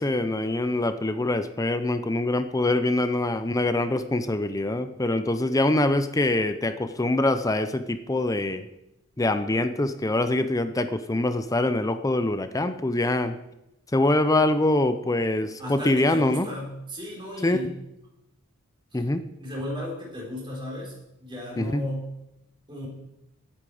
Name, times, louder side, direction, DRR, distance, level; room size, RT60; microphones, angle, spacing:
voice 1, 0.0-8.7 9.2-13.4 13.9-16.5 17.4-17.7 18.9-19.2 21.6-21.8, left 2 dB, 15° left, 10 dB, 0.6 m, -24 dB
voice 2, 15.6-17.7 18.9-19.0 19.4-20.9 21.2-22.1 22.7-22.9, left 1 dB, 25° right, -3 dB, 4.2 m, -34 dB
16.5 x 8.9 x 4.9 m, 0.88 s
head